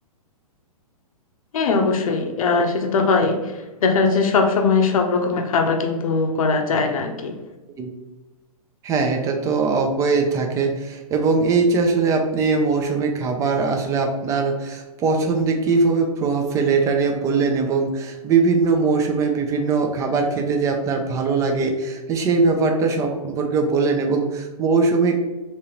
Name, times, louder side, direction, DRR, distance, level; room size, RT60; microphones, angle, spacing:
voice 1, 1.5-7.4, left 4 dB, 65° left, 4 dB, 0.6 m, -20 dB
voice 2, 8.8-25.2, right 4 dB, 15° right, 3 dB, 0.4 m, -21 dB
3.6 x 2.8 x 2.9 m, 1.1 s
hypercardioid pair, 125°, 19 cm